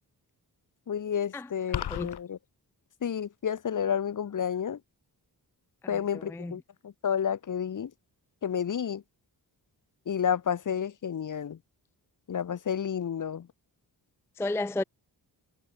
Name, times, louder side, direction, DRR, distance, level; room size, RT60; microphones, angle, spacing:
voice 1, 0.9-2.4 3.0-4.8 5.9-7.9 8.4-9.0 10.1-11.6 12.3-13.5, left 8 dB, 50° left, 1.0 m, -30 dB
sound 1, 1.7-2.2, left 11 dB, 75° left, 0.9 m, -32 dB
voice 2, 5.8-6.6 14.4-14.8, left 2 dB, 5° left, 0.4 m, -33 dB
wide cardioid pair, 145°, 40 cm